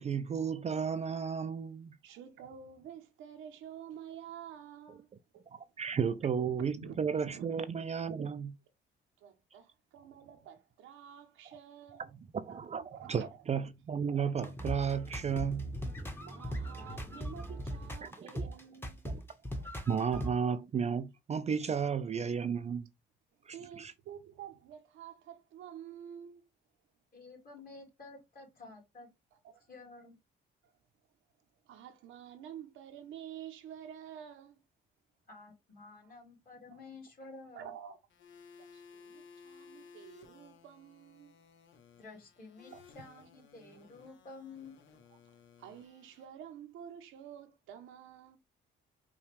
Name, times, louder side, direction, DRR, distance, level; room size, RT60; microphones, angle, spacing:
voice 1, 0.0-2.0 5.8-8.6 12.3-15.8 18.0-18.4 19.1-19.2 19.9-22.9 23.5-23.9, right 6 dB, 35° right, 0.4 m, -33 dB
voice 2, 2.0-5.1 5.3-5.5 5.9-6.1 6.6-6.9 7.3-7.5 9.2-12.1 12.5-12.6 12.9-13.4 16.1-19.1 19.6-19.7 23.5-26.4 29.4-29.6 31.6-34.6 36.0-36.1 36.7-36.8 37.5-38.0 38.6-41.4 42.7-42.8 45.6-48.4, right 9 dB, 90° right, 0.8 m, -49 dB
sound 1, 14.4-20.3, right 1 dB, 10° left, 0.9 m, -39 dB
voice 3, 27.1-29.1 29.7-30.2 35.3-37.7 42.0-44.8, left 3 dB, 45° left, 2.4 m, -51 dB
sound 2, 38.1-46.2, left 5 dB, 70° left, 1.0 m, -58 dB
5.4 x 2.3 x 3.2 m
cardioid pair, 90°, 20 cm